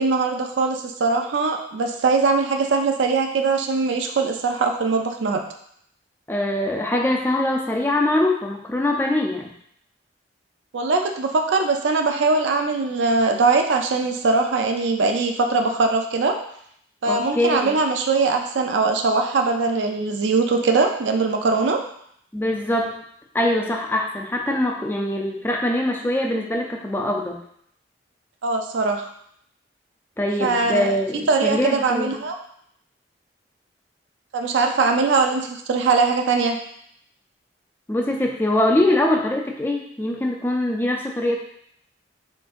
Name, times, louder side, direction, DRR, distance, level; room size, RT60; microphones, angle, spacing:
voice 1, 0.0-5.4 10.7-16.4 17.0-21.8 28.4-29.1 30.4-32.4 34.3-36.6, right 4 dB, 75° right, 4 dB, 0.4 m, -21 dB
voice 2, 6.3-9.5 17.1-17.8 22.3-23.0 23.3-27.4 30.2-32.2 37.9-41.4, left 1 dB, 10° left, 0 dB, 0.4 m, -23 dB
3.7 x 3.6 x 2.5 m, 0.68 s
head